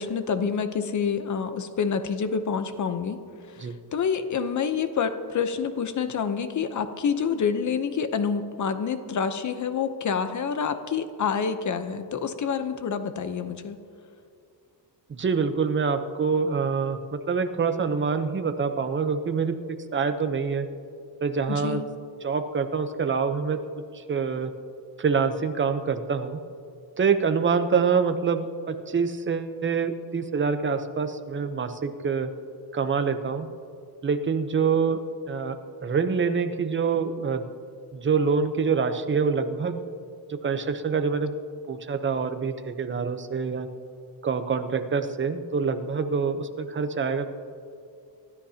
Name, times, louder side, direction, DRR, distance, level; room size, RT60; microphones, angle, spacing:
voice 1, 0.0-3.2 3.5-13.8 21.5-21.9, left 6 dB, 40° left, 10 dB, 0.8 m, -27 dB
voice 2, 15.1-20.7 21.2-21.8 22.2-23.6 23.9-24.5 25.0-26.4 27.0-32.3 32.7-33.5 34.0-35.0 35.3-37.5 37.9-39.8 40.3-41.3 41.7-43.7 44.2-47.2, right 5 dB, 25° right, 8 dB, 0.8 m, -26 dB
26.0 x 13.0 x 2.9 m, 2.5 s
cardioid pair, 145°, 44 cm